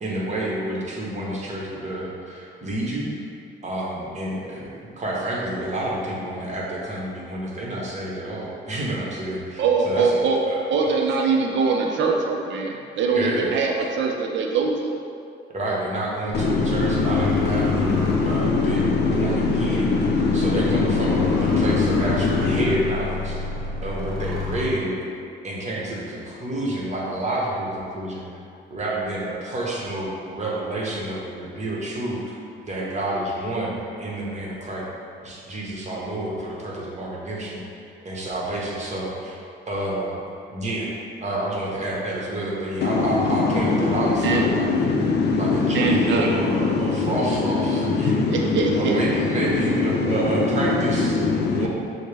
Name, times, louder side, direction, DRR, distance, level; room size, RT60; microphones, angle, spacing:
voice 1, 0.0-3.1 3.6-10.6 13.1-13.6 15.5-20.0 20.3-23.6 23.8-25.0 25.4-28.3 28.7-32.4 32.6-34.9 35.2-37.6 38.0-39.4 39.7-40.2 40.5-44.9 45.4-48.3 48.7-51.2 51.5-51.7, right 1 dB, 35° right, -4 dB, 1.0 m, -29 dB
voice 2, 9.6-10.4 10.7-14.9 44.2-44.4 45.7-46.3 48.3-49.0, right 4 dB, 70° right, 1 dB, 0.5 m, -22 dB
voice 3, 16.3-22.8 42.8-51.7, left 4 dB, 60° left, 1 dB, 0.5 m, -22 dB
sound 1, 16.3-24.6, left 3 dB, 5° left, 1.2 m, -30 dB
6.3 x 2.1 x 3.3 m, 2.4 s
cardioid pair, 90°, 20 cm